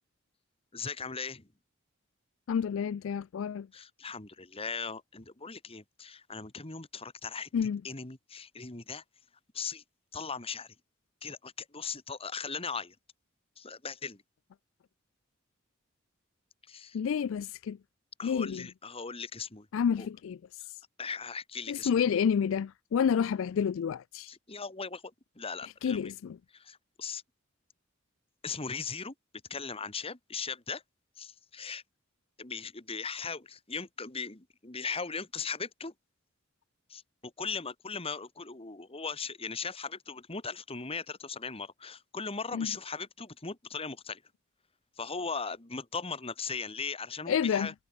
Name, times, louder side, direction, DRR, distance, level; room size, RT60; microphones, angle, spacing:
voice 1, 0.7-1.5 3.7-7.5 7.8-9.0 9.5-9.8 10.1-10.7 11.2-13.0 13.6-14.2 16.7-17.0 18.2-19.7 20.0-20.1 21.0-22.1 24.3-26.1 26.5-27.2 28.4-29.1 29.5-30.8 31.2-31.8 32.4-35.9 36.9-44.2 45.0-47.7, left 5 dB, 30° left, 1.8 m, -38 dB
voice 2, 2.5-3.7 7.5-7.8 16.9-17.8 18.2-18.6 19.7-20.4 21.7-24.3 25.8-26.4 42.5-42.7 47.3-47.7, left 7 dB, 65° left, 0.3 m, -29 dB
head